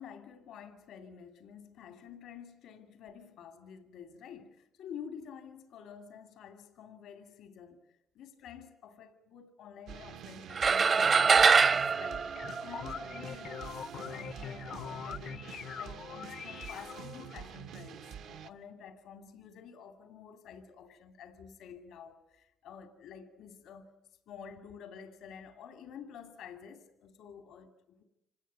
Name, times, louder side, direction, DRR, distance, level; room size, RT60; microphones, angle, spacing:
voice 1, 0.0-7.8 8.1-23.9 24.3-28.0, left 7 dB, 85° left, 2.6 m, -50 dB
sound 1, 9.9-18.5, right 8 dB, 85° right, 1.2 m, -47 dB
sound 2, 10.6-13.2, right 5 dB, 45° right, 0.8 m, -24 dB
sound 3, 12.1-17.3, left 7 dB, 70° left, 0.9 m, -43 dB
26.0 x 18.0 x 9.4 m
cardioid pair, 90°, 0 cm